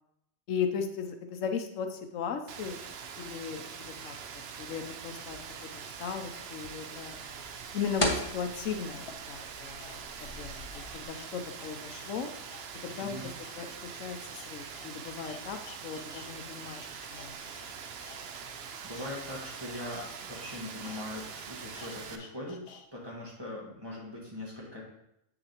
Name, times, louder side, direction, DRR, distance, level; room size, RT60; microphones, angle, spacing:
voice 1, 0.5-2.8 3.2-4.1 4.6-5.4 5.7-7.2 7.7-12.3 12.8-16.9 17.1-17.4, left 6 dB, 80° left, 6 dB, 1.0 m, -37 dB
Rain, 2.5-22.2, right 6 dB, 60° right, 0.8 m, -43 dB
sound 1, 5.7-11.0, left 1 dB, 30° left, 0.9 m, -38 dB
sound 2, 8.9-16.3 16.6-22.9 23.2-23.3, left 5 dB, 55° left, 0.9 m, -54 dB
voice 2, 13.0-13.3 18.8-22.6 22.9-24.8, left 1 dB, 20° right, -5 dB, 1.9 m, -41 dB
7.7 x 6.5 x 2.9 m, 0.80 s
omnidirectional pair, 1.3 m